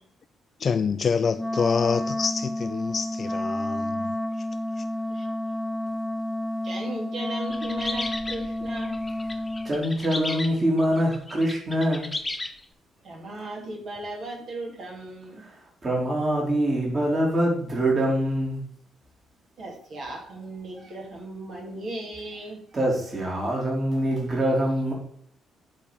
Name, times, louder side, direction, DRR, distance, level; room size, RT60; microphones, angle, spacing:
voice 1, 0.6-4.1 4.4-4.5 4.8-4.9, left 6 dB, 45° left, 0.4 m, -26 dB
Wind instrument woodwind instrument, 1.3-9.8, left 1 dB, ahead, 0.6 m, -30 dB
voice 2, 6.6-9.0 13.0-15.4 19.6-22.6, right 1 dB, 55° right, 2.9 m, -37 dB
sound 1, 7.5-12.6, left 2 dB, 20° left, 1.4 m, -35 dB
voice 3, 9.6-12.1 15.4-15.6 15.8-18.6 22.7-24.9, right 1 dB, 35° right, 3.1 m, -24 dB
8.5 x 4.4 x 7.0 m
figure-of-eight pair, 40°, 0 cm